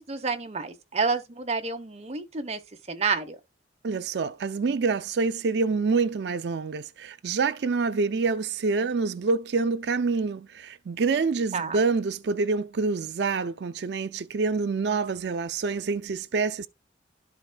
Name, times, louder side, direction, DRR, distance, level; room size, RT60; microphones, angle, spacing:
voice 1, 0.0-2.6 2.9-3.4 11.5-11.8, right 4 dB, 35° right, 0.9 m, -29 dB
voice 2, 3.8-16.7, right 4 dB, 65° right, 0.4 m, -27 dB
12.0 x 4.9 x 2.3 m
head